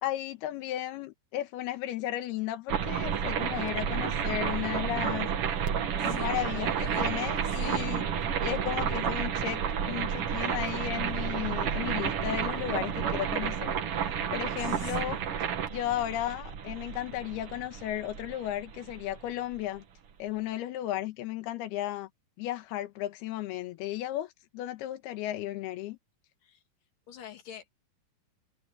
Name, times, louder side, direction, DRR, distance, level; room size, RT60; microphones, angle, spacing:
voice 1, 0.0-5.3 6.0-8.0 8.4-13.8 14.0-19.8 20.2-22.1 22.4-26.0, left 13 dB, 90° left, 3.1 m, -34 dB
sound 1, 2.7-19.6, right 7 dB, 55° right, 1.7 m, -31 dB
voice 2, 6.0-8.0 14.6-15.4 26.4-26.6 27.1-27.8, left 9 dB, 60° left, 4.1 m, -45 dB
omnidirectional pair, 4.4 m